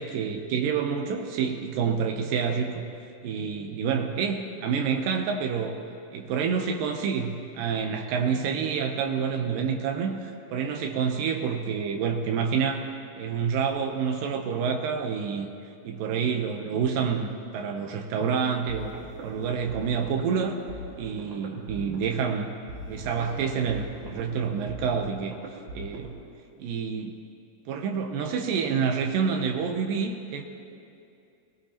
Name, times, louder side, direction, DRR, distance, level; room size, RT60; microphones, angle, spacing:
voice 1, 0.0-2.9 3.2-5.8 6.1-12.9 13.2-15.5 15.8-18.9 19.2-20.6 21.0-22.5 22.9-26.1 26.6-27.1 27.7-30.4, right 6 dB, 80° right, 4 dB, 2.0 m, -28 dB
sound 1, 18.7-26.2, right 1 dB, 55° right, 2.8 m, -42 dB
21.0 x 19.5 x 2.9 m, 2.6 s
omnidirectional pair, 5.0 m